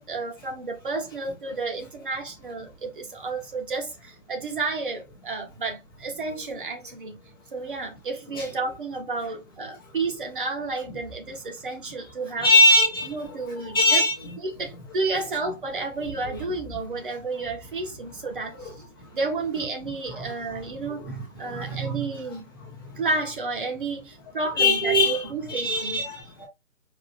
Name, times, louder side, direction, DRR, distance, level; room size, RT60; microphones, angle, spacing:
voice 1, 0.0-7.2 7.5-12.5 13.0-14.0 14.4-18.7 19.1-21.0 21.4-22.5 23.0-26.1, right 3 dB, 40° right, 1.4 m, -31 dB
voice 2, 12.4-13.4 13.7-14.2 21.0-21.2 21.5-22.0 24.6-25.2 25.5-26.5, left 1 dB, 15° left, 0.9 m, -21 dB
4.8 x 2.7 x 3.7 m
figure-of-eight pair, 155°, 40 cm